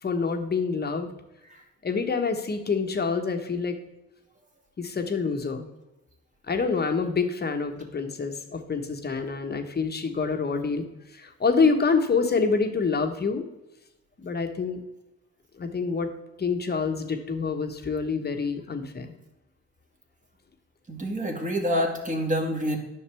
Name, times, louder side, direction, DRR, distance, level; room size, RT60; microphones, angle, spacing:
voice 1, 0.0-1.1 1.8-3.8 4.8-5.7 6.5-13.5 14.2-14.8 15.6-16.1 16.4-19.1, left 4 dB, 35° left, 6 dB, 1.2 m, -27 dB
voice 2, 20.9-22.8, equal, 25° right, 2 dB, 2.0 m, -27 dB
9.9 x 6.5 x 3.4 m, 0.97 s
cardioid pair, 90°, 30 cm